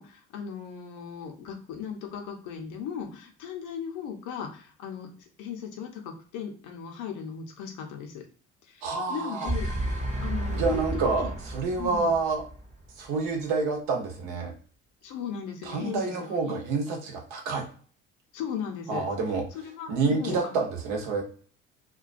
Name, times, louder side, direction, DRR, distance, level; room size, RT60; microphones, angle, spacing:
voice 1, 0.0-8.2 8.7-8.8 9.1-9.7 10.2-11.3 11.8-12.1 15.0-16.6 18.3-19.1 19.5-20.6, left 7 dB, 70° left, 4 dB, 0.7 m, -37 dB
voice 2, 8.8-9.5 10.5-12.4 13.0-14.5 15.6-17.7 18.9-19.4 19.9-21.2, right 4 dB, 75° right, 1 dB, 0.9 m, -28 dB
sound 1, 9.3-13.3, right 1 dB, 20° right, 0.8 m, -32 dB
2.3 x 2.2 x 2.4 m, 0.42 s
hypercardioid pair, 70°, 32 cm